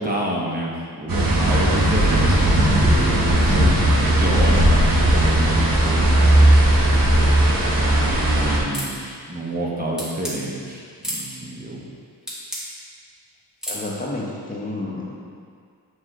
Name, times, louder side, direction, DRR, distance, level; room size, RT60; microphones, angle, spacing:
voice 1, 0.0-3.7 4.2-6.5 7.7-11.8, right 1 dB, 20° right, -4 dB, 0.9 m, -29 dB
sound 1, 1.1-8.6, right 1 dB, 55° right, 1.2 m, -17 dB
sound 2, 8.7-9.0 10.0-10.4 11.0-11.2 12.3-12.6 13.6-13.9, equal, ahead, 1.5 m, -30 dB
voice 2, 13.7-15.2, left 2 dB, 20° left, -4 dB, 0.9 m, -30 dB
7.6 x 4.7 x 3.8 m, 2.1 s
wide cardioid pair, 115°, 40 cm